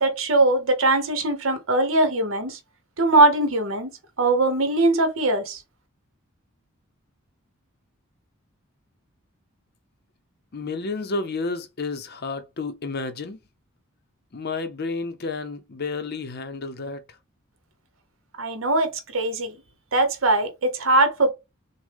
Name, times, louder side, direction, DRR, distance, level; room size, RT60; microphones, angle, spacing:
voice 1, 0.0-2.6 3.0-3.9 4.2-5.6 18.4-19.6 19.9-21.3, right 2 dB, 65° right, 1.1 m, -21 dB
voice 2, 10.5-13.4 14.3-17.2, left 3 dB, 45° left, 0.6 m, -31 dB
6.2 x 2.2 x 3.5 m
head